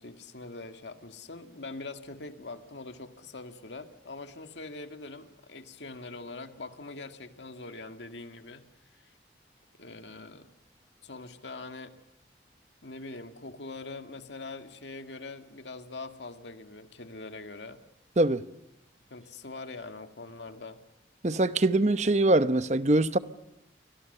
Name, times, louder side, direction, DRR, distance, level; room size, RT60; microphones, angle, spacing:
voice 1, 0.0-8.6 9.0-9.1 9.8-10.5 11.0-12.0 12.8-17.8 19.1-20.8, left 3 dB, 90° left, 2.0 m, -43 dB
voice 2, 21.2-23.2, right 2 dB, 40° right, 0.9 m, -23 dB
30.0 x 24.5 x 6.8 m
head